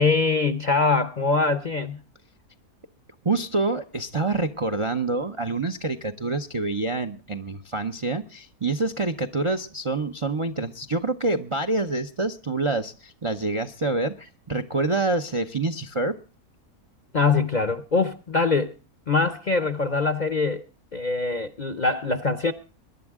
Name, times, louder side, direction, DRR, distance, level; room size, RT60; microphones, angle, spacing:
voice 1, 0.0-2.0 17.1-18.7 19.1-20.6 20.9-22.5, left 4 dB, 40° left, 0.6 m, -23 dB
voice 2, 3.2-16.2, right 3 dB, 35° right, 0.5 m, -27 dB
22.0 x 10.5 x 3.6 m
omnidirectional pair, 1.6 m